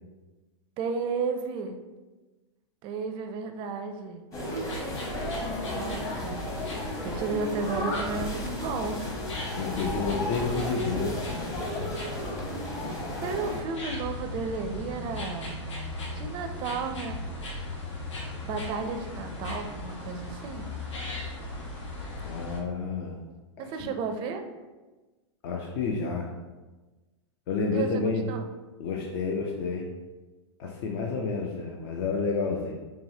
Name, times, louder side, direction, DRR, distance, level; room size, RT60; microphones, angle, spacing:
voice 1, 0.8-1.8 2.8-4.2 5.5-6.4 7.0-9.0 13.2-15.6 16.1-17.2 18.4-20.7 23.6-24.4 27.7-28.5, right 5 dB, 35° right, 6 dB, 0.4 m, -33 dB
sound 1, 4.3-13.6, left 1 dB, 20° left, 1.0 m, -34 dB
sound 2, 4.6-22.6, left 2 dB, 80° left, 0.9 m, -38 dB
voice 2, 9.5-11.2 22.2-23.2 23.6-23.7 25.4-26.3 27.5-28.2 28.8-29.9 30.6-32.7, left 4 dB, 55° left, 0 dB, 0.5 m, -30 dB
4.7 x 2.8 x 2.8 m, 1.2 s
hypercardioid pair, 130°, 15 cm